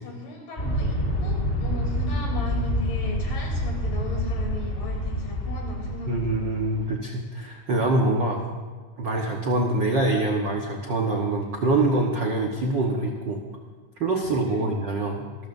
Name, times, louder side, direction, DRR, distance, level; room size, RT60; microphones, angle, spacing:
voice 1, 0.0-6.2 14.5-14.7, left 2 dB, 70° left, -1 dB, 4.8 m, -37 dB
Aircraft, 0.6-6.9, equal, 25° left, 1.2 m, -27 dB
voice 2, 6.1-8.4 9.0-13.4 14.0-15.3, right 2 dB, 70° right, 0 dB, 1.1 m, -24 dB
26.5 x 13.5 x 2.7 m, 1.5 s
omnidirectional pair, 4.0 m